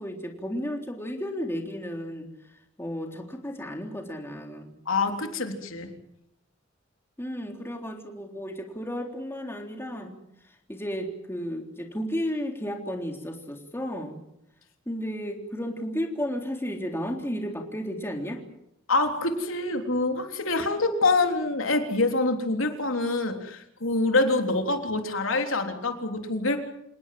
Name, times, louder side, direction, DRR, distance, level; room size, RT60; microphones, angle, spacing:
voice 1, 0.0-2.3 2.8-4.8 7.2-10.2 10.7-14.2 14.9-18.4, equal, 10° left, 2 dB, 3.6 m, -33 dB
voice 2, 4.9-5.9 18.9-26.6, left 2 dB, 85° left, 4 dB, 3.6 m, -26 dB
28.0 x 19.0 x 7.8 m, 0.80 s
head